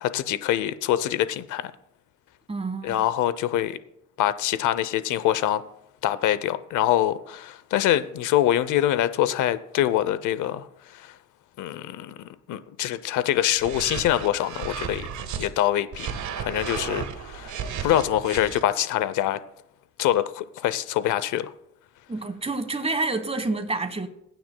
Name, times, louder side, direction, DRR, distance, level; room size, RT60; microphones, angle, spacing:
voice 1, 0.0-1.7 2.8-3.8 4.2-5.6 6.0-10.7 10.9-11.1 11.6-12.1 12.5-15.1 15.4-16.1 16.4-19.4 20.0-21.5, left 12 dB, 80° left, 0.7 m, -24 dB
voice 2, 2.5-3.1 22.1-24.1, right 3 dB, 20° right, 1.4 m, -28 dB
sound 1, 13.6-15.5 15.9-18.6, right 7 dB, 75° right, 1.4 m, -33 dB
22.5 x 9.2 x 2.3 m
cardioid pair, 90°, 30 cm